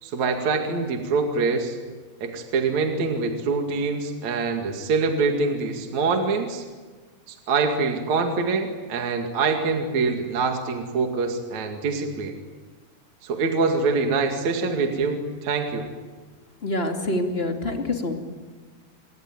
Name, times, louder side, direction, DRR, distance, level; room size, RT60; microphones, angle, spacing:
voice 1, 0.0-1.8 2.2-6.6 7.3-12.4 13.2-15.9, right 4 dB, 50° right, 4 dB, 3.2 m, -25 dB
voice 2, 16.6-18.1, left 1 dB, 20° left, 3 dB, 2.2 m, -26 dB
28.0 x 22.0 x 9.1 m, 1.4 s
omnidirectional pair, 4.5 m